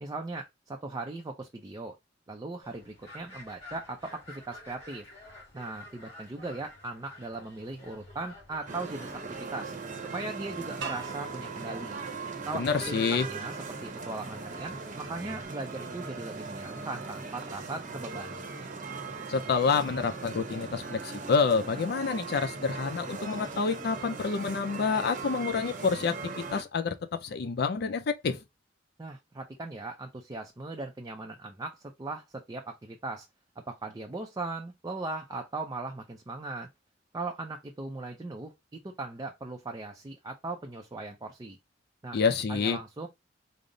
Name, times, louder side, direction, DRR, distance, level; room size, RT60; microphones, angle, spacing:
voice 1, 0.0-1.9 2.3-5.1 5.5-9.2 9.5-9.7 10.1-12.0 12.5-18.4 29.0-33.3 33.7-36.7 37.1-41.6 42.0-42.2 42.5-43.1, right 2 dB, 20° right, 0.4 m, -38 dB
sound 1, 2.6-15.5, left 1 dB, 35° left, 2.1 m, -52 dB
sound 2, 8.7-26.6, right 4 dB, 45° right, 0.8 m, -39 dB
sound 3, 10.8-13.7, right 6 dB, 75° right, 1.0 m, -44 dB
voice 2, 12.5-13.3 19.3-28.4 42.1-42.8, left 5 dB, 60° left, 0.4 m, -28 dB
5.2 x 2.0 x 3.7 m
head